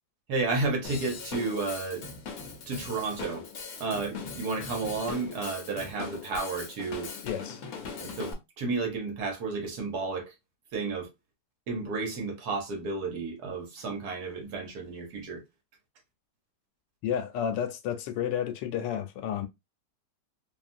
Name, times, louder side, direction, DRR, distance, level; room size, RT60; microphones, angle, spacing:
voice 1, 0.3-2.1 2.7-3.5 3.8-7.1 8.0-10.3 10.7-11.1 11.7-15.4, right 3 dB, 65° right, 1.4 m, -32 dB
Drum kit / Drum, 0.8-8.3, left 5 dB, 60° left, 1.0 m, -40 dB
voice 2, 7.2-7.6 17.0-19.5, left 9 dB, 85° left, 1.2 m, -31 dB
3.0 x 2.4 x 2.5 m
omnidirectional pair, 1.9 m